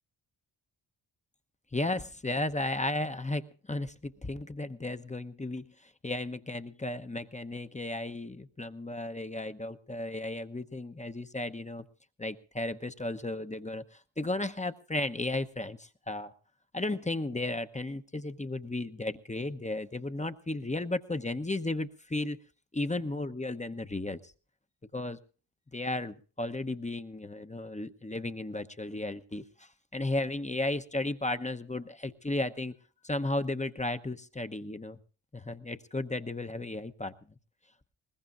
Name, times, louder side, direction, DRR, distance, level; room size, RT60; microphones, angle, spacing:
voice 1, 1.7-5.6 6.0-11.8 12.2-16.3 16.7-22.4 22.7-24.3 24.9-25.2 25.7-32.7 33.0-35.0 35.3-37.1, left 2 dB, 15° left, 9 dB, 0.9 m, -34 dB
21.0 x 20.0 x 2.6 m, 0.38 s
cardioid pair, 65°, 48 cm